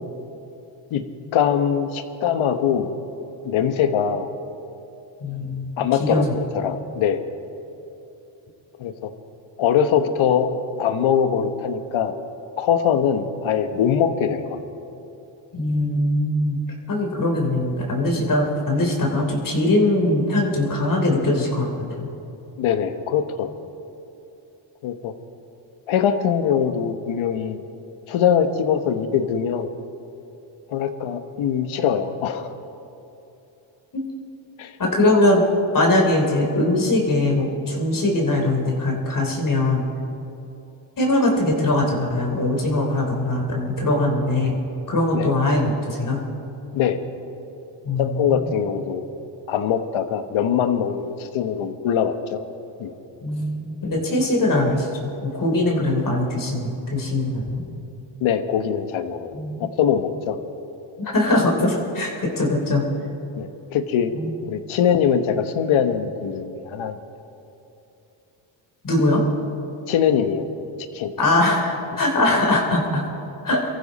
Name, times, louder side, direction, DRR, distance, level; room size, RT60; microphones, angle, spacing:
voice 1, 1.3-2.9 3.4-4.3 5.8-7.2 8.8-9.1 9.6-10.5 10.8-12.2 12.6-14.6 22.6-23.5 24.8-25.1 25.9-27.6 28.1-29.7 30.7-32.5 34.6-34.7 45.1-45.3 46.7-47.0 48.0-49.1 49.5-52.4 52.8-52.9 58.2-59.3 59.6-60.4 61.0-61.1 63.4-64.1 64.4-67.0 69.9-70.4 70.9-71.1, left 8 dB, 70° left, 9 dB, 1.3 m, -22 dB
voice 2, 5.2-6.3 15.5-16.6 16.9-21.7 22.0-22.1 33.9-34.0 34.8-35.4 35.7-39.9 41.0-44.6 44.9-46.2 47.8-48.5 53.2-57.6 59.3-59.7 61.1-62.8 64.1-64.3 68.8-69.2 71.2-73.0 73.4-73.6, left 1 dB, 40° left, 0 dB, 3.3 m, -21 dB
23.5 x 14.5 x 4.2 m, 2.9 s
cardioid pair, 95°, 49 cm